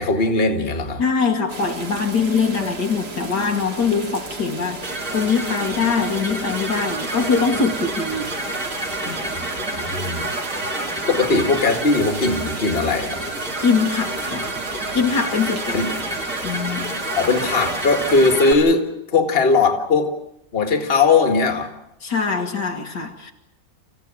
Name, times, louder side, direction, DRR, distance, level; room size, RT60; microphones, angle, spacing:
voice 1, 0.0-1.0 9.3-9.5 9.8-10.3 11.1-13.2 15.7-15.9 17.1-20.1 20.5-21.7, left 3 dB, 30° left, 5 dB, 2.1 m, -19 dB
voice 2, 1.0-8.6 9.1-9.3 13.6-14.5 14.9-15.9 16.4-16.9 22.0-23.3, left 5 dB, 65° left, 3 dB, 2.2 m, -23 dB
sound 1, 1.5-18.3, right 3 dB, 60° right, 2.8 m, -35 dB
sound 2, 4.8-18.5, right 2 dB, 45° right, 4.1 m, -29 dB
27.0 x 15.5 x 8.9 m, 0.85 s
omnidirectional pair, 2.0 m